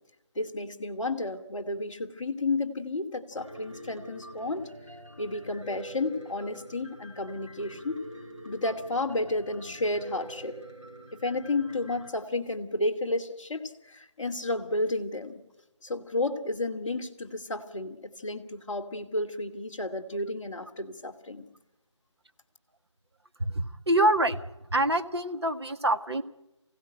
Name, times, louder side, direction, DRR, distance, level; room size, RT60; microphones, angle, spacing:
voice 1, 0.3-4.6 5.2-8.0 8.4-10.5 11.1-15.4 15.8-21.5, left 2 dB, 5° left, -7 dB, 1.2 m, -32 dB
Piano, 3.4-12.1, right 1 dB, 90° right, 5.5 m, -46 dB
voice 2, 23.4-24.4 24.7-26.2, right 1 dB, 55° right, 7 dB, 1.5 m, -25 dB
24.5 x 16.5 x 9.9 m, 0.93 s
figure-of-eight pair, 160°, 16 cm